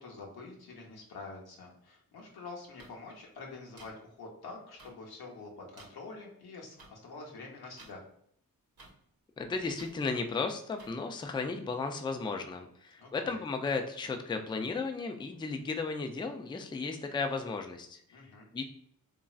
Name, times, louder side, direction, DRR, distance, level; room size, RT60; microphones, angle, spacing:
voice 1, 0.0-8.0 13.0-13.4 18.1-18.5, left 3 dB, 90° left, -1 dB, 0.8 m, -47 dB
sound 1, 2.8-2.9 3.8-3.9 4.8-4.9 5.8-5.9 6.8-6.9 7.8-7.9 8.8-8.9 9.8-9.9 10.8-10.9, right 2 dB, 80° right, 0.9 m, -52 dB
voice 2, 9.4-18.0 18.5-18.6, left 4 dB, 15° left, 5 dB, 0.3 m, -34 dB
3.0 x 2.5 x 2.4 m, 0.69 s
cardioid pair, 55°, 36 cm